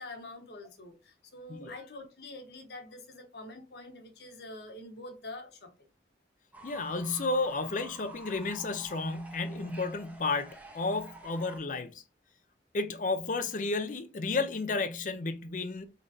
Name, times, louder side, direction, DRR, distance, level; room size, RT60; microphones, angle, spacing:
voice 1, 0.0-5.7, left 2 dB, 65° left, 1.2 m, -46 dB
Fowl / Bird, 6.5-11.6, right 1 dB, 10° right, 0.7 m, -50 dB
voice 2, 6.6-12.0 12.7-15.9, left 3 dB, 45° left, 0.5 m, -32 dB
3.8 x 3.2 x 2.6 m
head